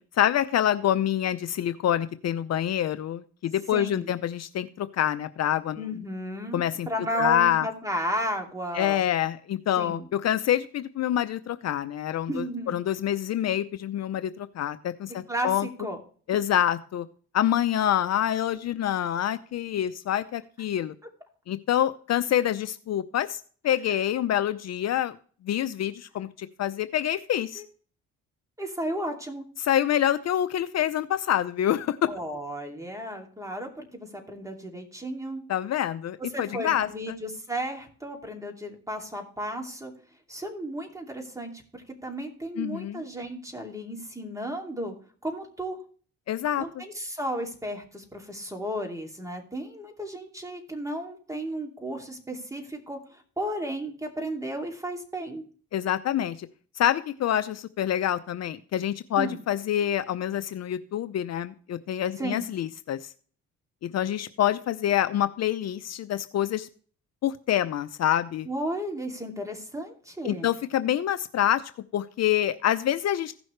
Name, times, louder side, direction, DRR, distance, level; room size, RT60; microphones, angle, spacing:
voice 1, 0.2-5.8 6.5-6.9 7.2-7.7 8.7-15.7 16.3-17.1 17.3-20.9 21.5-25.2 25.4-27.6 29.6-32.1 35.5-36.9 42.6-43.0 46.3-46.6 55.7-56.5 56.8-63.1 63.8-66.7 67.2-68.5 70.2-71.6 71.9-73.3, left 11 dB, 60° left, 12 dB, 0.6 m, -26 dB
voice 2, 3.7-4.1 5.8-9.0 9.8-10.1 12.3-12.8 15.3-16.0 23.9-24.0 27.5-27.6 28.6-29.4 32.1-35.4 36.2-39.9 40.3-44.9 45.2-45.8 46.6-55.4 59.2-59.4 62.2-62.5 68.4-70.5, equal, 10° right, 2 dB, 2.8 m, -34 dB
15.5 x 6.2 x 3.2 m, 0.43 s
cardioid pair, 90°, 30 cm